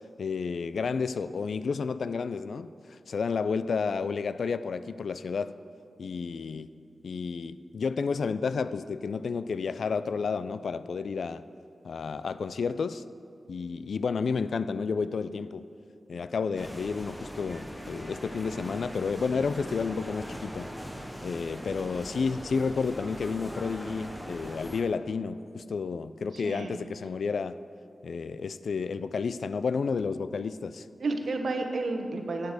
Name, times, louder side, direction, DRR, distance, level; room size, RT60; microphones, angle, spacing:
voice 1, 0.2-5.5 6.0-6.7 7.0-11.4 11.8-13.1 13.5-15.6 16.1-20.7 21.2-27.6 28.0-30.9, left 5 dB, 70° left, 14 dB, 0.3 m, -31 dB
sound 1, 16.5-24.8, equal, ahead, 0.7 m, -40 dB
voice 2, 26.3-26.8 31.0-32.5, right 3 dB, 65° right, 5 dB, 0.9 m, -31 dB
8.9 x 8.2 x 6.5 m, 2.4 s
wide cardioid pair, 155°, 0 cm